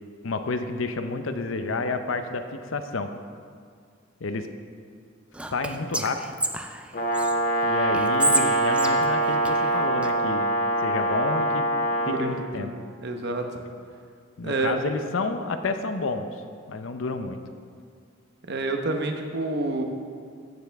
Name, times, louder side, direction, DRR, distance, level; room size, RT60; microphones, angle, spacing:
voice 1, 0.2-3.1 4.2-4.5 5.5-6.2 7.6-10.5 10.8-11.7 12.1-12.7 14.4-16.3 16.7-17.4, left 3 dB, 70° left, 8 dB, 0.6 m, -30 dB
Whispering, 5.3-7.3 7.9-10.1, right 2 dB, 5° right, 0.3 m, -29 dB
Brass instrument, 6.9-12.2, right 1 dB, 50° left, 1.3 m, -24 dB
voice 2, 12.0-13.6 14.4-14.8 18.5-19.8, right 2 dB, 55° right, 4 dB, 0.9 m, -29 dB
14.5 x 6.9 x 3.5 m, 2.1 s
head